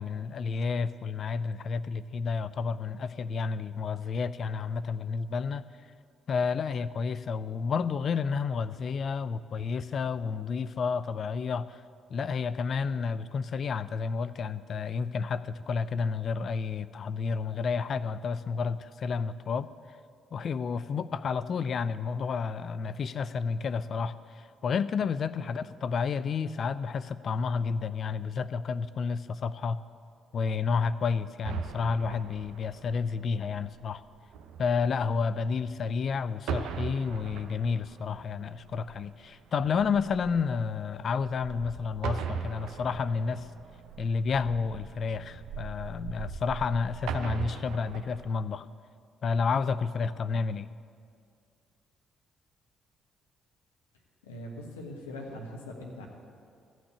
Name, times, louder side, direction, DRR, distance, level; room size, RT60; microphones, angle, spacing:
voice 1, 0.0-5.6 6.3-11.8 12.1-19.7 20.3-29.8 30.3-34.0 34.6-43.5 44.0-48.7 49.2-50.7, left 5 dB, 55° left, 14 dB, 0.4 m, -30 dB
sound 1, 31.4-36.1 36.4-48.3, right 6 dB, 70° right, 0.8 m, -40 dB
voice 2, 54.2-56.1, left 1 dB, 85° left, 0 dB, 1.4 m, -41 dB
14.5 x 6.2 x 8.2 m, 2.2 s
hypercardioid pair, 45°, 0 cm